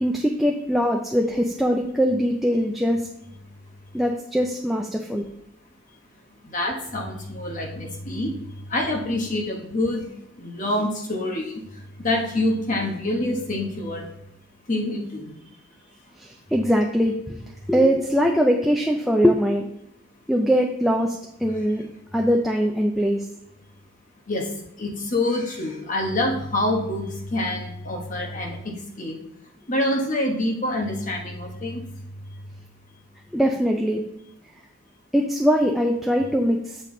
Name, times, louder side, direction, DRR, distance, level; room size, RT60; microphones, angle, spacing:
voice 1, 0.0-3.0 3.9-5.3 16.2-17.4 17.7-19.7 20.3-21.1 21.4-21.8 22.1-23.2 33.3-34.0 35.1-36.8, equal, ahead, 1 dB, 0.4 m, -21 dB
voice 2, 6.5-8.3 8.7-10.0 10.4-11.5 12.0-14.1 14.7-15.3 24.3-24.5 24.8-29.2 29.7-31.8, left 1 dB, 35° left, 1 dB, 1.1 m, -26 dB
7.6 x 5.5 x 3.8 m, 0.79 s
head